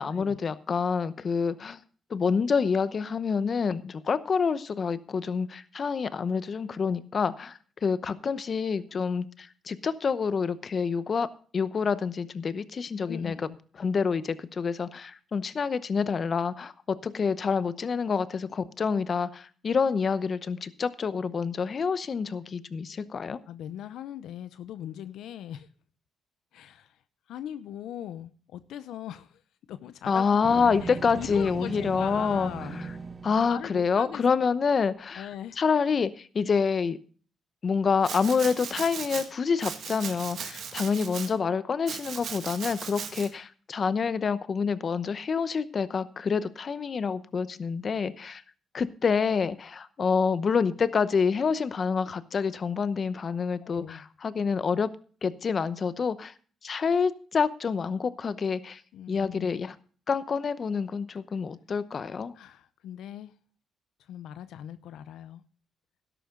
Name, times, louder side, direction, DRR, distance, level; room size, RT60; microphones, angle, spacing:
voice 1, 0.0-1.8 2.1-13.5 13.8-23.4 30.1-32.5 33.2-35.3 35.6-37.0 37.6-48.4 48.7-54.9 55.2-56.3 56.6-58.8 59.1-59.7 60.1-62.3, left 5 dB, 45° left, 14 dB, 0.8 m, -27 dB
voice 2, 13.1-13.6 23.5-25.7 26.5-27.0 27.3-29.4 29.7-30.3 30.8-32.8 33.5-34.2 35.2-35.6 53.6-54.0 58.9-59.5 62.3-63.3 64.1-65.4, left 10 dB, 80° left, 13 dB, 0.6 m, -40 dB
sound 1, 30.4-34.4, right 4 dB, 30° right, 1.4 m, -39 dB
Domestic sounds home sounds, 38.0-39.3 39.6-41.3 41.9-43.3, right 7 dB, 65° right, 1.9 m, -37 dB
12.5 x 11.0 x 3.8 m, 0.42 s
cardioid pair, 90°, 0 cm